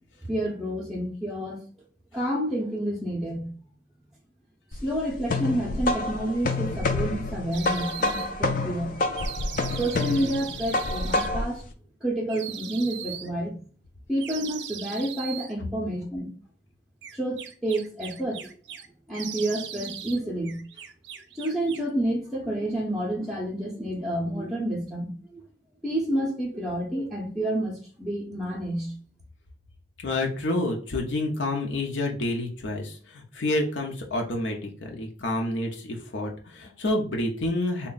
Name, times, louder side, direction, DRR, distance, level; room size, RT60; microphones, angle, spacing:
voice 1, 0.2-1.6 2.1-3.5 4.8-9.0 9.7-11.6 12.0-13.5 14.1-16.3 17.1-18.5 19.1-20.6 21.3-25.4 25.8-28.9, right 1 dB, ahead, -4 dB, 0.5 m, -29 dB
sound 1, 4.7-11.6, left 2 dB, 45° left, 0.4 m, -28 dB
sound 2, 7.5-8.3 9.2-11.3 12.3-13.3 14.2-15.5 17.0-18.9 19.1-20.2 20.4-21.9, right 9 dB, 70° right, 0.5 m, -39 dB
voice 2, 30.0-37.9, left 1 dB, 75° left, 1 dB, 0.7 m, -28 dB
3.6 x 2.2 x 3.9 m, 0.41 s
head